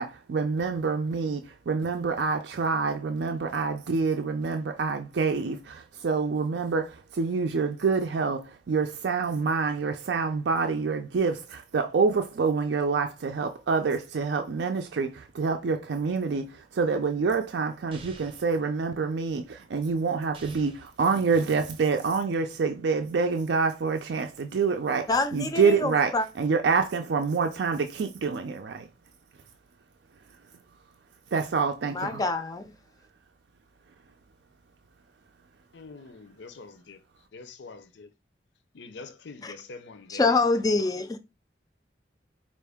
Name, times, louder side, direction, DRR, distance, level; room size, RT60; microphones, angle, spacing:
voice 1, 0.0-28.9 31.3-32.2, right 4 dB, 70° right, 0.4 m, -27 dB
sound 1, 17.9-18.5 20.3-20.9, right 3 dB, 30° right, 0.6 m, -47 dB
voice 2, 25.1-26.3 31.9-32.7 39.4-39.5 40.1-41.2, left 3 dB, 20° left, 0.4 m, -26 dB
voice 3, 35.7-37.0 37.3-38.1 38.7-40.9, left 3 dB, 80° left, 0.6 m, -45 dB
4.4 x 2.5 x 3.4 m
head